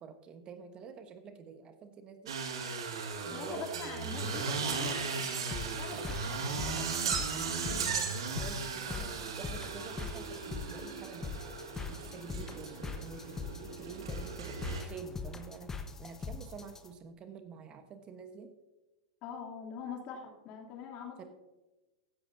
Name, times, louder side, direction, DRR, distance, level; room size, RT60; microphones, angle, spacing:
voice 1, 0.0-2.4 3.2-4.7 5.9-11.3 11.9-18.5 21.2-21.3, right 5 dB, 35° right, 8 dB, 1.2 m, -49 dB
sound 1, 2.3-14.8, right 5 dB, 70° right, 1.9 m, -37 dB
voice 2, 3.3-5.3 5.6-6.4 19.2-21.3, left 6 dB, 45° left, 1 dB, 3.1 m, -44 dB
sound 2, 5.5-16.9, left 4 dB, 15° left, 1.2 m, -42 dB
15.5 x 11.5 x 2.8 m, 1.1 s
hypercardioid pair, 95°, 3 cm